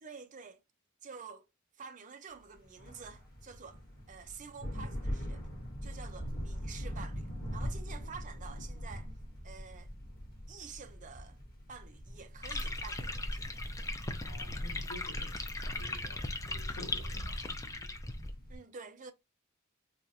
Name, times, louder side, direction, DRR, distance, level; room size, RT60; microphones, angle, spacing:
voice 1, 0.0-0.6 1.0-1.5 1.7-3.8 4.1-5.4 5.8-9.1 9.4-9.9 10.5-11.4 11.7-13.5 18.5-19.1, right 5 dB, 35° right, 0.5 m, -49 dB
sound 1, 2.6-18.6, equal, 45° left, 1.3 m, -43 dB
sound 2, 12.4-18.3, left 2 dB, 15° left, 0.4 m, -38 dB
voice 2, 14.2-17.5, left 2 dB, 85° left, 0.8 m, -49 dB
4.3 x 2.4 x 2.6 m
head